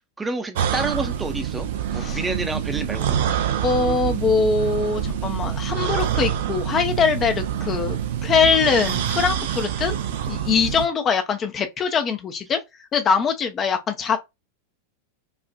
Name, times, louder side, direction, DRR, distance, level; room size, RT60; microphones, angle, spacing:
voice 1, 0.2-3.3, right 2 dB, 10° right, 0.8 m, -29 dB
sound 1, 0.5-10.9, right 9 dB, 55° right, 0.6 m, -26 dB
voice 2, 3.6-10.0 10.3-12.6 12.9-14.2, left 5 dB, 25° left, 0.7 m, -22 dB
5.5 x 2.4 x 2.3 m
figure-of-eight pair, 90°, 0 cm